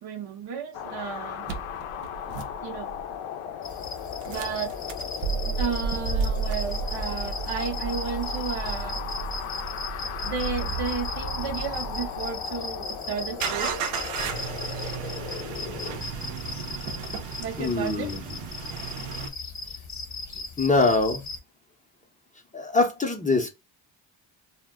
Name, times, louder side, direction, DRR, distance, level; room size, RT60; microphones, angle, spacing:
voice 1, 0.0-1.5 2.6-2.9 4.3-4.7 5.6-9.0 10.2-13.8 17.4-18.2, right 6 dB, 50° right, 0.6 m, -33 dB
sound 1, 0.7-16.0, left 9 dB, 85° left, 0.6 m, -37 dB
sound 2, 1.5-3.1 4.2-12.3 13.4-19.3, right 5 dB, 85° right, 0.7 m, -33 dB
sound 3, 3.6-21.4, left 3 dB, 35° left, 1.0 m, -38 dB
voice 2, 17.6-18.4 20.6-21.2 22.5-23.5, left 3 dB, 15° left, 0.6 m, -23 dB
2.1 x 2.1 x 3.4 m
supercardioid pair, 70°, 50 cm